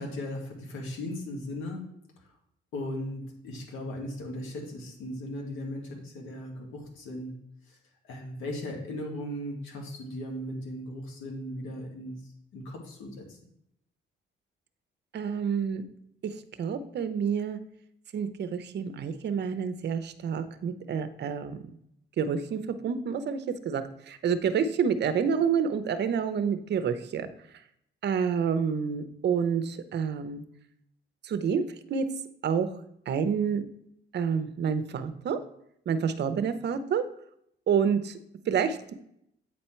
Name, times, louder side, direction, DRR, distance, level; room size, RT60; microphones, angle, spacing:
voice 1, 0.0-1.8 2.7-7.4 7.7-7.8 8.0-12.2 12.5-13.4, left 1 dB, 85° left, 1 dB, 1.9 m, -37 dB
voice 2, 15.1-15.8 16.6-17.6 18.1-21.6 22.2-27.3 28.0-30.4 31.2-32.1 32.4-32.7 33.1-33.6 34.1-35.4 35.9-37.0 37.7-38.2 38.5-38.9, right 7 dB, 60° right, 11 dB, 0.7 m, -28 dB
8.4 x 4.3 x 4.4 m, 0.75 s
cardioid pair, 90°, 20 cm